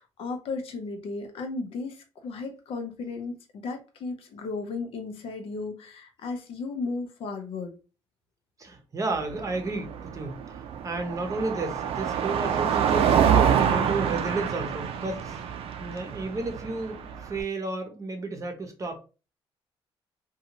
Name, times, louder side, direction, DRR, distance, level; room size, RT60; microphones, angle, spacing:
voice 1, 0.0-7.7, left 3 dB, 75° left, 0.7 m, -35 dB
voice 2, 8.6-10.4 10.8-15.4 15.8-19.0, right 3 dB, 30° right, 0.7 m, -32 dB
Car passing by, 9.1-17.4, right 8 dB, 70° right, 0.4 m, -26 dB
2.7 x 2.3 x 2.8 m
cardioid pair, 105°, 10 cm